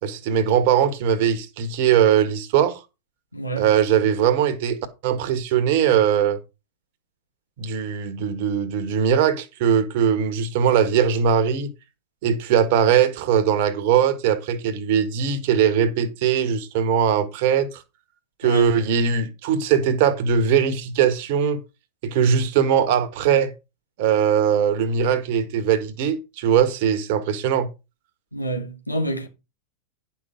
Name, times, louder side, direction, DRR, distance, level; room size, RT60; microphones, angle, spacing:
voice 1, 0.0-2.8 3.6-4.8 5.0-6.4 7.6-11.7 12.2-17.8 18.4-21.6 22.0-23.5 24.0-27.7, right 8 dB, 50° right, 1.7 m, -20 dB
voice 2, 3.3-3.7 18.4-18.7 28.3-29.3, right 1 dB, 85° left, 2.2 m, -27 dB
11.0 x 6.0 x 5.0 m
figure-of-eight pair, 90°, 0 cm